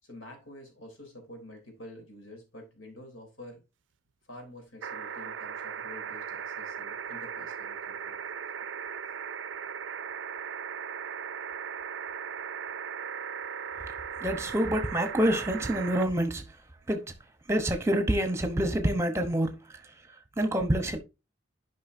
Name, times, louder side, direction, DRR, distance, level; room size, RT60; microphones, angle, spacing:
voice 1, 0.0-3.6 4.3-8.2 8.6-8.8, left 1 dB, 85° left, 3.5 m, -48 dB
sound 1, 4.8-16.1 17.5-17.6, right 7 dB, 70° right, 0.4 m, -38 dB
voice 2, 14.2-16.4 16.9-17.1 17.5-19.6 20.4-21.0, right 1 dB, 15° right, 0.9 m, -27 dB
10.0 x 5.4 x 2.7 m
head